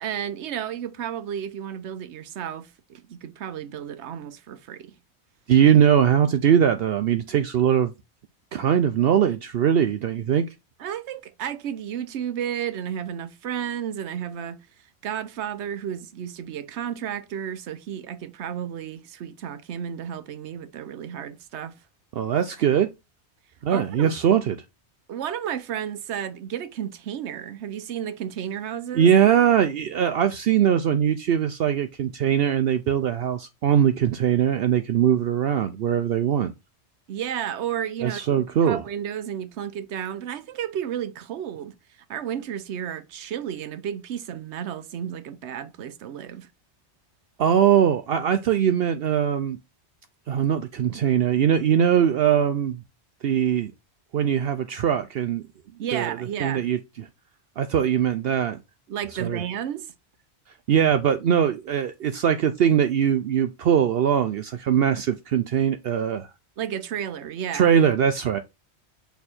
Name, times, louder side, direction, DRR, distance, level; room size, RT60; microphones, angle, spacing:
voice 1, 0.0-4.9 10.8-14.6 15.0-21.8 23.7-24.1 25.1-29.1 37.1-41.7 42.1-46.5 55.8-56.7 58.9-59.9 66.6-67.8, right 9 dB, 85° right, 1.0 m, -32 dB
voice 2, 5.5-7.9 8.5-10.4 22.2-22.9 23.6-24.6 28.9-36.5 38.0-38.8 47.4-49.6 50.3-52.8 53.2-53.7 54.1-55.4 55.9-56.8 57.6-58.6 59.2-59.4 60.7-66.3 67.5-68.4, right 9 dB, 65° right, 0.8 m, -21 dB
6.6 x 3.5 x 4.2 m
omnidirectional pair, 1.1 m